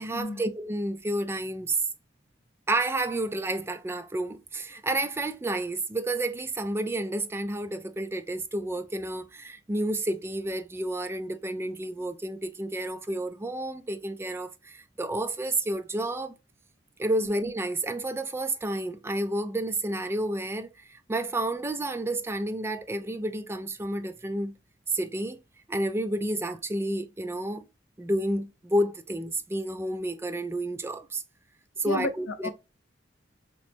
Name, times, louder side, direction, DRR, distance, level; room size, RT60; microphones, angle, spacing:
voice 1, 0.0-1.8 2.7-16.4 17.0-24.5 24.9-25.4 25.7-27.7 28.0-31.2 31.8-32.5, right 1 dB, 15° right, 0.3 m, -30 dB
voice 2, 31.8-32.5, left 2 dB, 75° left, 0.5 m, -32 dB
3.0 x 3.0 x 3.3 m
head